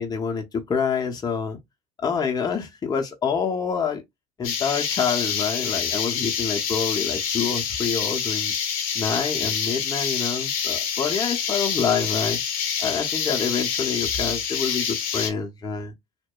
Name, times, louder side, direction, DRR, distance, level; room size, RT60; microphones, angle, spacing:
voice 1, 0.0-1.6 2.0-4.0 4.4-8.5 8.9-12.4 12.8-15.9, left 6 dB, 20° left, 0.6 m, -27 dB
sound 1, 4.4-15.3, left 7 dB, 65° left, 0.8 m, -26 dB
2.7 x 2.1 x 2.2 m
hypercardioid pair, 75°, 18 cm